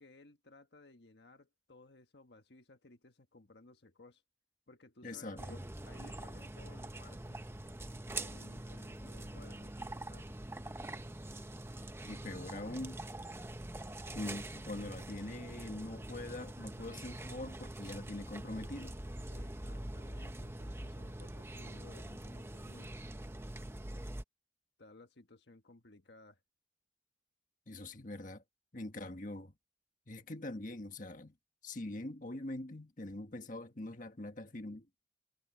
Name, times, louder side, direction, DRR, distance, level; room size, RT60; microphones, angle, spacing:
voice 1, 0.0-4.2 4.7-7.4 8.1-10.3 19.3-22.9 24.8-26.4, left 2 dB, 65° left, 1.5 m, -59 dB
voice 2, 5.0-5.6 12.0-13.0 14.1-19.0 27.7-28.4 28.7-29.5 30.1-31.3 31.6-34.9, left 1 dB, 45° left, 1.6 m, -43 dB
sound 1, 5.4-24.2, right 1 dB, 15° right, 0.8 m, -44 dB
head